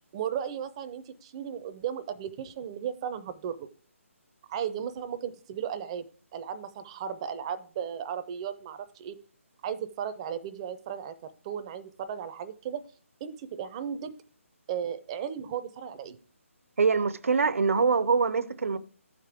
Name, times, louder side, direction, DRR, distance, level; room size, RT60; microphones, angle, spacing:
voice 1, 0.1-3.7 4.5-6.1 6.3-9.2 9.6-12.8 13.2-14.1 14.7-16.2, right 8 dB, 25° right, 0.5 m, -35 dB
voice 2, 16.8-18.8, right 5 dB, 70° right, 0.6 m, -24 dB
12.0 x 5.1 x 3.4 m
figure-of-eight pair, 155°, 8 cm